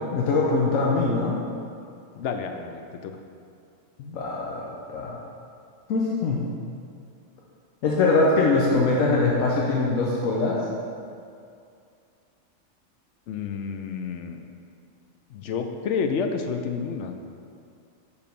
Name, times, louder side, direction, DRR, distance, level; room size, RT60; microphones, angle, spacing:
voice 1, 0.1-1.4 4.0-4.6 4.9-5.2 5.9-6.4 7.8-10.6, left 3 dB, 85° left, -4 dB, 1.1 m, -22 dB
voice 2, 2.1-3.1 13.3-14.4 15.3-17.1, left 5 dB, 70° left, 6 dB, 0.8 m, -29 dB
5.1 x 4.7 x 5.2 m, 2.4 s
omnidirectional pair, 1.4 m